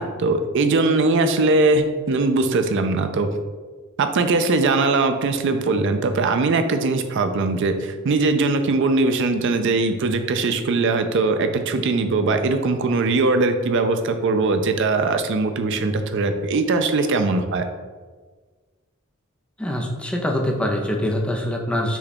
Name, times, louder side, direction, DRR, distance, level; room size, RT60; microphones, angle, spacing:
voice 1, 0.0-3.3 4.0-17.7, right 3 dB, 60° right, 8 dB, 0.4 m, -20 dB
voice 2, 19.6-22.0, left 1 dB, 5° left, 1 dB, 0.5 m, -24 dB
5.7 x 2.3 x 4.1 m, 1.4 s
head